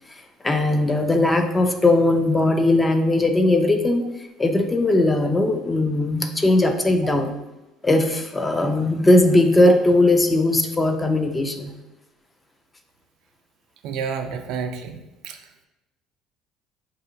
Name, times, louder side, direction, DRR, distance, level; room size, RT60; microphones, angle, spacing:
voice 1, 0.4-4.1 4.4-7.4 7.8-11.7, left 2 dB, 15° left, 6 dB, 0.3 m, -19 dB
voice 2, 13.8-15.4, right 6 dB, 70° right, 6 dB, 0.4 m, -30 dB
4.1 x 2.7 x 2.6 m, 0.98 s
cardioid pair, 120°, 0 cm